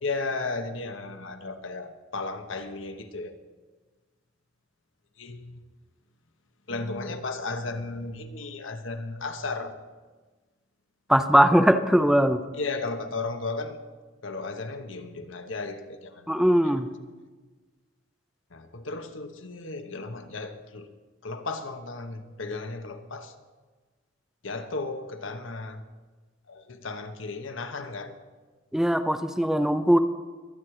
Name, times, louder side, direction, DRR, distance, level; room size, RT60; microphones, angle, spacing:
voice 1, 0.0-3.4 5.2-5.6 6.7-9.8 12.5-13.8 14.2-16.3 16.6-16.8 18.5-20.9 21.2-23.3 24.4-25.9 26.5-28.2, left 3 dB, 75° left, 7 dB, 1.1 m, -34 dB
voice 2, 11.1-12.4 16.3-16.9 28.7-30.0, equal, ahead, 9 dB, 0.5 m, -20 dB
22.5 x 8.7 x 4.8 m, 1.3 s
head